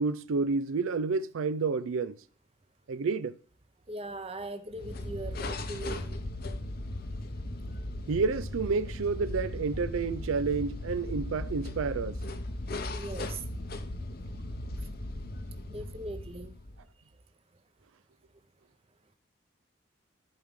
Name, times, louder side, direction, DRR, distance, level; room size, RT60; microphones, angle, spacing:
voice 1, 0.0-2.2 2.9-3.4 8.1-12.2, right 4 dB, 80° right, 0.4 m, -30 dB
voice 2, 3.9-6.2 12.9-13.4 15.7-16.6, right 2 dB, 30° right, 0.8 m, -40 dB
sound 1, 4.7-16.9, left 1 dB, 45° left, 0.8 m, -37 dB
14.0 x 4.8 x 3.6 m
head